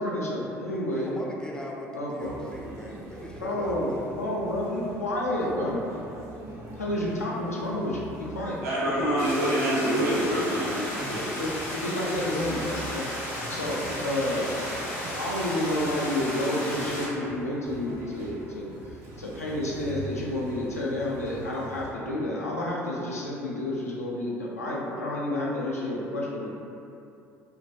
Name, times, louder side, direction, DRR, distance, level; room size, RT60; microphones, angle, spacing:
voice 1, 0.0-1.1 1.9-2.1 3.4-3.9 4.2-5.8 6.8-8.6 11.4-11.5 11.7-13.0 13.5-14.5 15.1-18.7 19.2-26.6, left 1 dB, 85° left, -5 dB, 0.3 m, -30 dB
voice 2, 0.7-4.1, equal, 10° left, -2 dB, 0.3 m, -40 dB
sound 1, 2.2-21.9, right 2 dB, 45° right, 0.5 m, -43 dB
voice 3, 8.6-11.3, right 1 dB, 70° right, -9 dB, 0.9 m, -26 dB
sound 2, 9.2-17.1, equal, 55° left, 0.9 m, -34 dB
2.2 x 2.2 x 2.5 m, 2.7 s
figure-of-eight pair, 60°, 8 cm